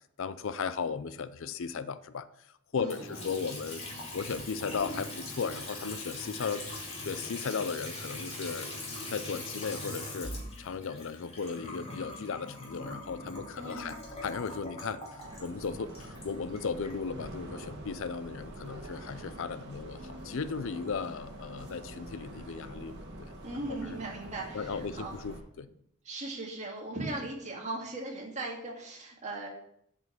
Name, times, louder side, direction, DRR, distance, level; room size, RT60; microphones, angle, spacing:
voice 1, 0.2-2.3 2.7-3.8 4.1-8.7 9.1-23.3 23.7-23.8 24.5-25.7, left 5 dB, 60° left, 14 dB, 0.5 m, -36 dB
voice 2, 2.7-3.3 13.6-13.9 23.4-25.1 26.0-29.5, right 2 dB, 30° right, -1 dB, 2.1 m, -38 dB
Water tap faucet / Sink (filling or washing) / Trickle dribble, 2.8-16.9, left 2 dB, 30° left, 2.2 m, -41 dB
sound 1, 15.2-25.4, right 1 dB, 50° right, 1.9 m, -45 dB
7.7 x 5.3 x 7.0 m, 0.71 s
head